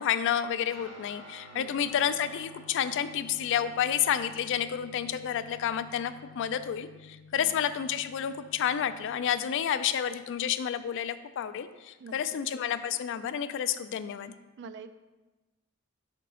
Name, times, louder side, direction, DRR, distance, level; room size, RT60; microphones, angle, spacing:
voice 1, 0.0-14.3, left 9 dB, 60° left, 12 dB, 0.3 m, -30 dB
Guitar, 0.7-10.4, left 1 dB, 85° right, 2.1 m, -52 dB
voice 2, 14.6-14.9, right 5 dB, 55° right, 11 dB, 0.4 m, -45 dB
5.2 x 3.7 x 5.4 m, 1.1 s
head